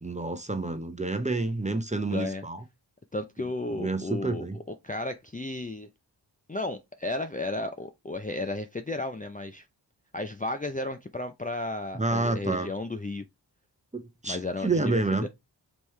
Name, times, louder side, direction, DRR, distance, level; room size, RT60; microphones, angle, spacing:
voice 1, 0.0-2.6 3.8-4.6 11.9-12.7 13.9-15.3, right 2 dB, 15° right, 0.8 m, -29 dB
voice 2, 2.1-2.4 3.1-4.4 4.8-5.9 6.5-9.6 10.1-13.2 14.2-15.3, left 2 dB, 20° left, 0.5 m, -33 dB
5.3 x 3.1 x 3.2 m
wide cardioid pair, 50°, 42 cm